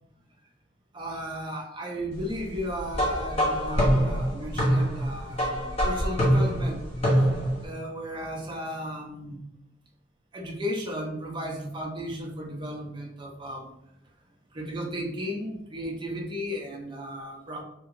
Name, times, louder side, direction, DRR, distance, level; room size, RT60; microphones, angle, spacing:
voice 1, 0.9-6.8 7.6-9.4 10.3-13.7 14.5-17.6, equal, 25° right, 0 dB, 0.5 m, -35 dB
sound 1, 2.9-7.6, equal, 35° left, 0.9 m, -24 dB
2.9 x 2.7 x 2.5 m, 0.82 s
head